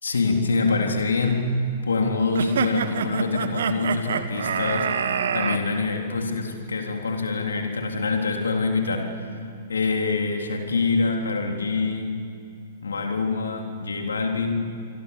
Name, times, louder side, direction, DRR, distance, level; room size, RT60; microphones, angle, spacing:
voice 1, 0.0-4.9 5.3-9.4 9.7-12.1 12.8-14.5, left 3 dB, 70° left, 3 dB, 3.5 m, -25 dB
sound 1, 2.3-5.6, right 7 dB, 60° right, 1.5 m, -26 dB
26.5 x 24.5 x 7.2 m, 2.5 s
figure-of-eight pair, 110°, 0 cm